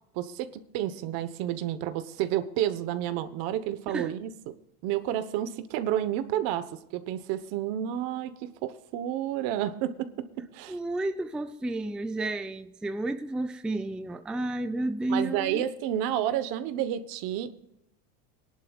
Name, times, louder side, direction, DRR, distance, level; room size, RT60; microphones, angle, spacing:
voice 1, 0.1-4.5 4.8-10.1 10.4-10.8 15.1-17.5, right 11 dB, 70° right, 1.1 m, -30 dB
voice 2, 10.7-15.6, right 2 dB, ahead, 0.4 m, -31 dB
21.5 x 11.0 x 2.4 m
cardioid pair, 130°, 38 cm